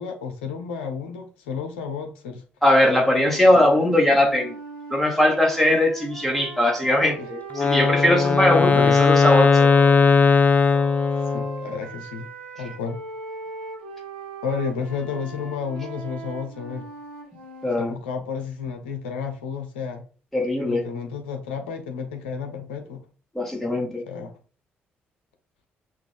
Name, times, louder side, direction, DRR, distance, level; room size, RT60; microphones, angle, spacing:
voice 1, 0.0-2.4 7.2-7.3 8.5-9.0 11.3-12.3 12.6-13.0 14.4-16.9 17.8-20.0 20.6-23.0 24.1-24.4, left 6 dB, 75° left, 0.7 m, -31 dB
voice 2, 2.6-4.5 4.9-9.7 17.6-18.0 20.3-20.8 23.4-24.0, left 1 dB, 5° left, 1.9 m, -20 dB
sound 1, 3.0-10.0 10.7-17.9, right 3 dB, 80° right, 1.2 m, -39 dB
Wind instrument woodwind instrument, 7.5-11.7, left 5 dB, 25° left, 0.5 m, -18 dB
5.9 x 2.6 x 3.5 m
figure-of-eight pair, 45°, 6 cm